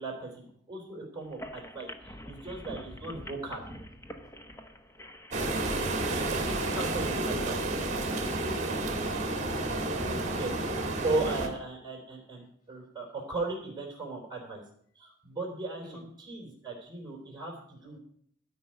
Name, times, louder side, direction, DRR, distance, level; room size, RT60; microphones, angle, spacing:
voice 1, 0.0-3.6 6.2-7.6 10.3-10.5 11.0-14.6 15.0-18.0, right 3 dB, 20° right, -4 dB, 4.0 m, -37 dB
sound 1, 1.2-6.7, equal, 15° left, 0.9 m, -46 dB
sound 2, 5.3-11.5, right 2 dB, 40° right, 2.0 m, -31 dB
voice 2, 8.4-9.7 15.8-16.0 17.8-18.0, left 1 dB, 45° left, 4 dB, 2.7 m, -48 dB
12.5 x 5.4 x 9.0 m, 0.64 s
head